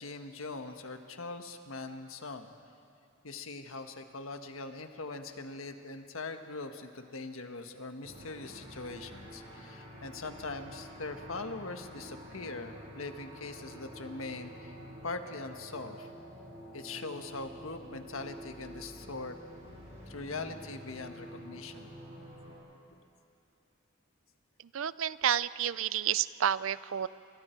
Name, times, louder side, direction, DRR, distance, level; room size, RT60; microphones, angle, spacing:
voice 1, 0.0-2.6 3.2-14.7 15.0-16.1 16.7-19.4 20.1-21.9, left 3 dB, 85° left, 6 dB, 1.5 m, -41 dB
sound 1, 8.0-22.5, equal, 30° right, 6.1 m, -48 dB
voice 2, 24.7-27.1, right 9 dB, 75° right, 17 dB, 0.5 m, -30 dB
29.0 x 27.0 x 4.6 m, 2.5 s
head